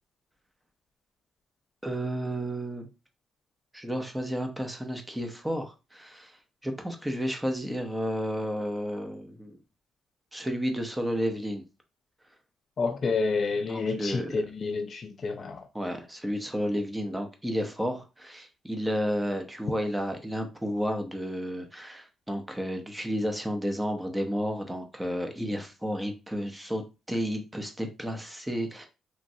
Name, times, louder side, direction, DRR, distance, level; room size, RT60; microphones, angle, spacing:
voice 1, 1.8-2.9 3.7-6.4 6.6-9.6 10.3-11.6 13.7-14.4 15.7-28.9, equal, 10° right, 0.7 m, -32 dB
voice 2, 12.8-15.7, left 4 dB, 45° left, 0.4 m, -29 dB
3.1 x 2.4 x 2.6 m
cardioid pair, 90°, 0 cm